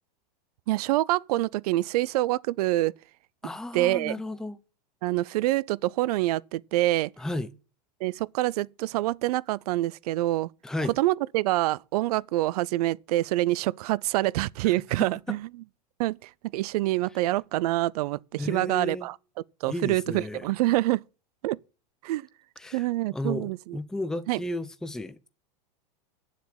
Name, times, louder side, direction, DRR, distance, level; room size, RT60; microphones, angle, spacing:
voice 1, 0.7-2.9 3.7-4.2 5.0-7.1 8.0-10.5 11.0-15.5 16.0-19.2 19.6-21.0 21.4-21.6 22.0-22.3 22.7-23.8 24.3-24.4, right 17 dB, 65° right, 0.5 m, -26 dB
voice 2, 3.4-4.6 7.2-7.5 10.6-10.9 15.3-15.4 18.4-19.1 19.6-20.5 22.6-22.9 23.1-25.3, left 1 dB, 5° left, 0.6 m, -33 dB
9.5 x 7.4 x 8.7 m
supercardioid pair, 145°, 21 cm